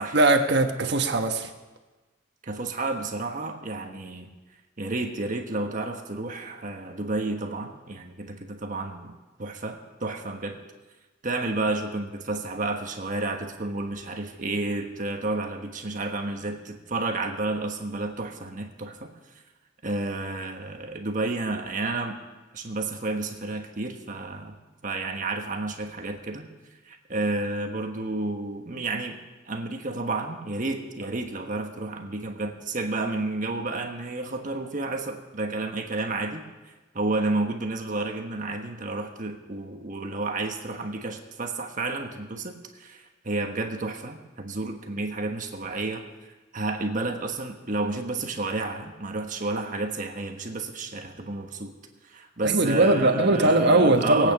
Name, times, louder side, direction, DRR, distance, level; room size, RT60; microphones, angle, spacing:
voice 1, 0.1-1.5 52.4-54.3, right 2 dB, 60° right, 4 dB, 1.4 m, -20 dB
voice 2, 2.4-4.3 4.8-9.1 9.4-10.6 11.2-19.1 19.8-22.2 22.5-24.6 24.8-26.5 26.8-29.2 29.5-36.4 36.9-46.0 46.5-51.7 52.0-54.3, right 2 dB, 40° right, 3 dB, 1.3 m, -31 dB
21.0 x 9.0 x 6.1 m, 1.2 s
head